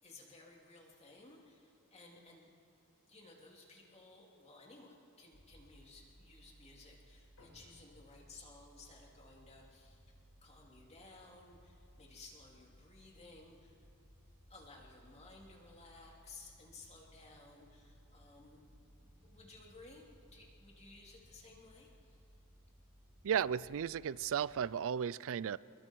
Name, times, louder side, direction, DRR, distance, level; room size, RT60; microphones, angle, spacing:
voice 1, 0.0-2.5 3.1-10.0 10.4-13.8 14.5-18.6 19.0-22.2, left 3 dB, 30° left, -1 dB, 3.2 m, -57 dB
sound 1, 5.3-24.5, equal, 20° right, 2.4 m, -63 dB
sound 2, 7.4-12.1, left 2 dB, 85° left, 4.9 m, -69 dB
voice 2, 23.2-25.6, right 8 dB, 65° right, 20 dB, 0.4 m, -34 dB
27.5 x 22.0 x 4.7 m, 2.6 s
head